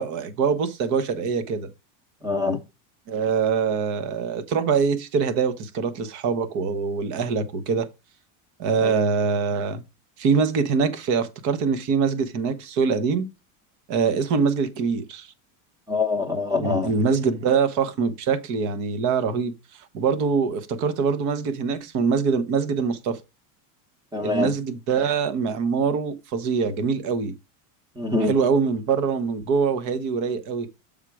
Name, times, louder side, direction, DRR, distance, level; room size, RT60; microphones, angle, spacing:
voice 1, 0.0-1.7 3.1-7.9 8.6-9.8 10.2-13.3 13.9-15.3 16.6-19.5 19.9-23.2 24.2-27.3 28.3-30.7, right 5 dB, 40° right, 1.0 m, -24 dB
voice 2, 2.2-2.6 8.8-8.9 15.9-16.9 24.1-24.5 27.9-28.4, left 3 dB, 10° right, 1.0 m, -24 dB
7.3 x 3.7 x 4.7 m
supercardioid pair, 160°, 45 cm